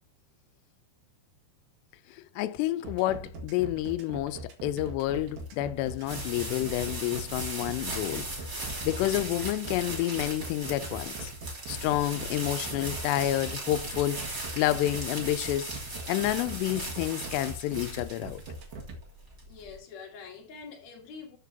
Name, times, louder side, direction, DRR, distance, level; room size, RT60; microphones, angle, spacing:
voice 1, 2.1-8.3 8.5-11.3 11.7-14.2 14.6-15.7 16.1-18.4, left 14 dB, 90° left, 2.7 m, -29 dB
sound 1, 2.8-19.0, right 3 dB, 65° right, 3.3 m, -41 dB
sound 2, 5.0-19.8, right 2 dB, 25° right, 2.9 m, -38 dB
voice 2, 19.5-21.4, left 5 dB, 50° left, 3.0 m, -45 dB
13.0 x 6.9 x 2.8 m
omnidirectional pair, 4.8 m